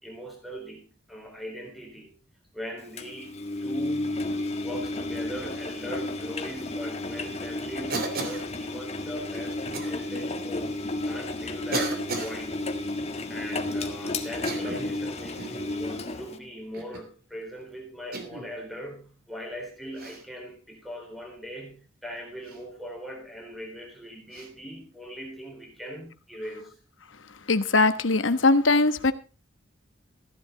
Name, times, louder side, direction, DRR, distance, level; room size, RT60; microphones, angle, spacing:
voice 1, 0.0-2.1 2.5-4.3 4.6-10.8 11.1-12.6 13.3-26.8, equal, ahead, 1 dB, 4.0 m, -40 dB
Engine, 3.0-16.4, left 2 dB, 35° left, 1.6 m, -32 dB
Cough, 7.9-8.5 9.7-9.9 10.8-10.9 11.7-12.4 14.3-14.9 15.4-15.6 16.7-17.1 18.1-18.5 19.9-20.2 22.4-22.6 24.3-24.5, right 3 dB, 50° right, 3.0 m, -34 dB
voice 2, 27.5-29.1, left 3 dB, 75° left, 11 dB, 1.3 m, -21 dB
15.0 x 11.5 x 4.1 m, 0.34 s
head